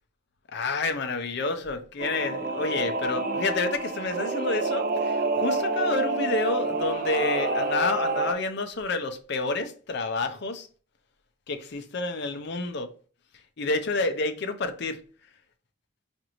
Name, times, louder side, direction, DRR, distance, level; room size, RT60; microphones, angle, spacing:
voice 1, 0.5-10.7 11.5-12.9 13.6-15.0, left 3 dB, 55° left, 0.5 m, -29 dB
Singing / Musical instrument, 2.0-8.3, right 3 dB, 45° right, 0.5 m, -28 dB
5.0 x 2.6 x 2.9 m
head